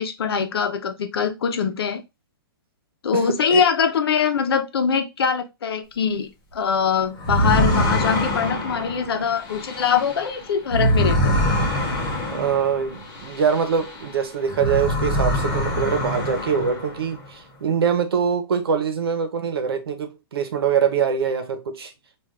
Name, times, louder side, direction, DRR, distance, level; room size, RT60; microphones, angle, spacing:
voice 1, 0.0-2.0 3.0-11.3, left 6 dB, 80° left, 0.8 m, -23 dB
voice 2, 3.1-3.6 12.3-21.9, right 6 dB, 80° right, 0.9 m, -23 dB
sound 1, 7.2-14.1 14.4-17.1, equal, 20° left, 0.9 m, -24 dB
3.3 x 2.5 x 3.7 m
hypercardioid pair, 175°, 13 cm